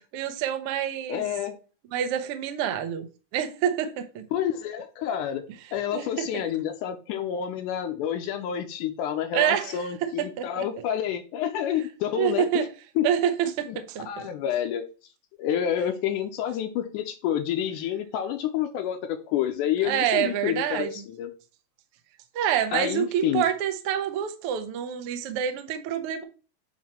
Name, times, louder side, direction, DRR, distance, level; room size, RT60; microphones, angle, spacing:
voice 1, 0.1-1.2 1.9-3.1 3.3-4.2 5.9-6.4 9.3-10.7 12.1-12.7 13.0-14.3 19.8-21.0 22.3-26.2, right 9 dB, 85° right, 1.2 m, -27 dB
voice 2, 1.1-1.6 4.3-5.4 5.7-12.7 13.0-13.1 13.7-14.8 15.4-21.3 22.7-23.4, left 10 dB, 80° left, 2.0 m, -29 dB
9.2 x 3.1 x 4.3 m
omnidirectional pair, 3.9 m